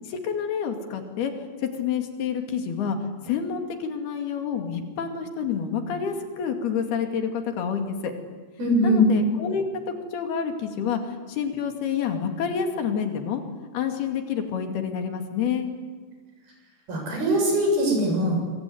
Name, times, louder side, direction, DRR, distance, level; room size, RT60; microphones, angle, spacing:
voice 1, 0.0-1.3 1.6-3.0 3.2-8.1 8.8-9.7 10.1-13.4 13.7-15.7, left 7 dB, 90° left, 5 dB, 4.4 m, -28 dB
voice 2, 8.6-9.0 16.9-18.4, equal, 75° right, 1 dB, 8.8 m, -21 dB
25.5 x 23.5 x 9.6 m, 1.4 s
omnidirectional pair, 4.4 m